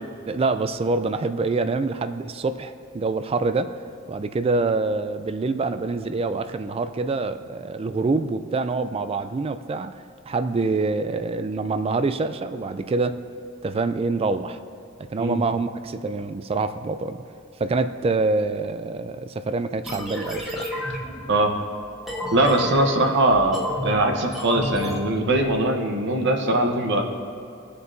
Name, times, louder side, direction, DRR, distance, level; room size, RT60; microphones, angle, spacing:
voice 1, 0.3-3.8 4.1-13.2 13.6-14.6 15.1-17.2 17.6-20.7, right 3 dB, 30° right, 10 dB, 0.3 m, -26 dB
sound 1, 19.8-25.6, equal, ahead, 1.2 m, -32 dB
voice 2, 22.3-27.0, right 1 dB, 60° right, 3 dB, 0.9 m, -21 dB
17.5 x 6.7 x 2.7 m, 2.5 s
head